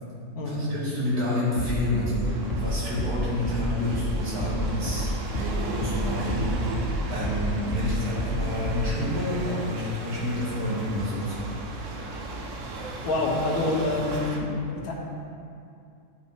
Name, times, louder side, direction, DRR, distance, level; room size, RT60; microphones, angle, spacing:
voice 1, 0.3-2.3 2.6-11.5 11.9-12.2, left 1 dB, 80° right, -8 dB, 2.5 m, -29 dB
sound 1, 1.6-6.5 6.8-9.0, right 1 dB, 55° left, 1.4 m, -30 dB
sound 2, 2.2-14.4, right 2 dB, 60° right, 1.0 m, -36 dB
voice 2, 13.0-14.9, left 2 dB, 75° left, -1 dB, 1.5 m, -27 dB
10.5 x 5.0 x 3.4 m, 2.5 s
omnidirectional pair, 1.6 m